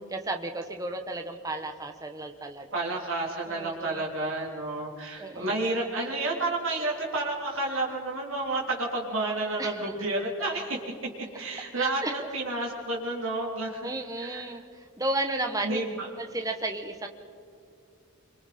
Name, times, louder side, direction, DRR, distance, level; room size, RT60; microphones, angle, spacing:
voice 1, 0.1-2.7 3.4-4.2 5.2-5.6 9.6-9.8 11.8-12.3 13.8-15.9 16.2-17.1, right 2 dB, 15° right, 5 dB, 1.1 m, -33 dB
voice 2, 2.7-10.8 11.3-13.9 14.2-14.4 15.6-16.1, right 2 dB, 75° right, -3 dB, 3.3 m, -30 dB
26.5 x 24.0 x 4.3 m, 2.3 s
head